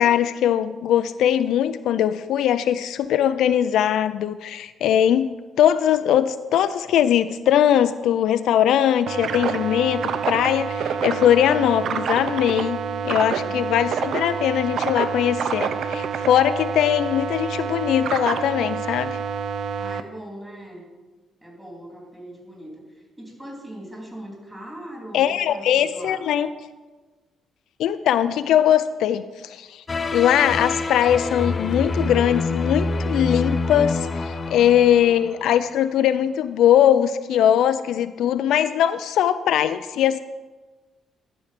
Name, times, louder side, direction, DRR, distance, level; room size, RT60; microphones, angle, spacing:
voice 1, 0.0-5.3 5.6-12.8 13.0-19.2 25.1-26.5 27.8-29.8 30.1-40.2, left 10 dB, 80° left, 12 dB, 0.3 m, -20 dB
sound 1, 9.1-20.0, right 6 dB, 65° right, 0.5 m, -27 dB
voice 2, 13.0-13.7 19.7-20.9 21.4-26.2 34.6-35.3, equal, 10° right, -2 dB, 3.1 m, -40 dB
sound 2, 29.9-35.6, left 3 dB, 35° left, 0.6 m, -26 dB
12.0 x 4.5 x 5.1 m, 1.2 s
cardioid pair, 90°, 0 cm